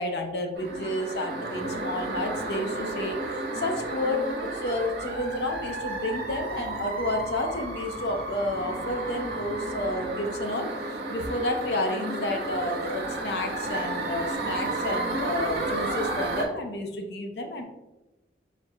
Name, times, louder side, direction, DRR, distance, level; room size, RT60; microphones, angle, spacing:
voice 1, 0.0-10.7 11.1-17.6, left 1 dB, 70° left, 4 dB, 0.6 m, -30 dB
sound 1, 0.6-16.5, right 2 dB, 60° right, 0.7 m, -32 dB
4.5 x 3.6 x 2.3 m, 1.0 s
head